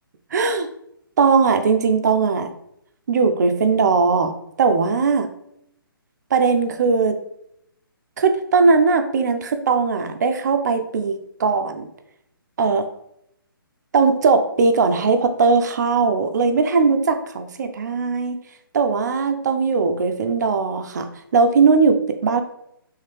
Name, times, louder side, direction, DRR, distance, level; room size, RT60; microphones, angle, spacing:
voice 1, 0.3-0.7 1.2-2.5 3.1-4.3 4.6-5.3 6.3-7.2 8.2-11.9 12.6-12.9 13.9-18.4 18.7-22.4, right 4 dB, 50° right, 8 dB, 0.4 m, -19 dB
3.1 x 2.8 x 3.2 m, 0.76 s
figure-of-eight pair, 135°, 12 cm